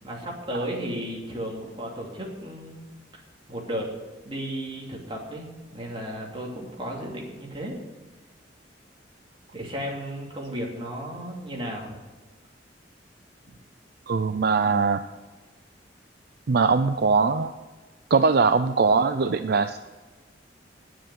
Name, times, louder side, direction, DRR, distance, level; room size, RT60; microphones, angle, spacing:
voice 1, 0.0-2.8 3.5-3.9 4.2-7.8 9.5-12.0 13.5-13.6, equal, 30° right, -2 dB, 2.7 m, -34 dB
voice 2, 14.1-15.0 16.5-17.5 18.1-19.8, right 4 dB, 60° right, 9 dB, 0.5 m, -21 dB
10.0 x 7.6 x 9.2 m, 1.3 s
head